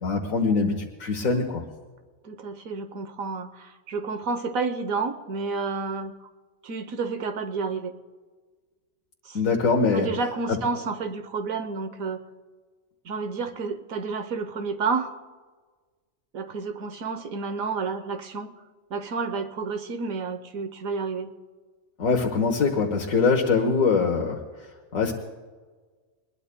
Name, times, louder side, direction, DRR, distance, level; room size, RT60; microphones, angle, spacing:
voice 1, 0.0-1.6 9.3-10.1 10.5-10.6 22.0-24.4 24.9-25.1, left 4 dB, 85° left, 1 dB, 1.6 m, -23 dB
voice 2, 2.2-6.3 6.6-7.9 9.2-9.5 9.9-12.2 13.0-15.1 16.3-18.5 18.9-21.3, right 4 dB, 85° right, 9 dB, 1.4 m, -30 dB
22.0 x 21.0 x 2.2 m, 1.4 s
omnidirectional pair, 1.4 m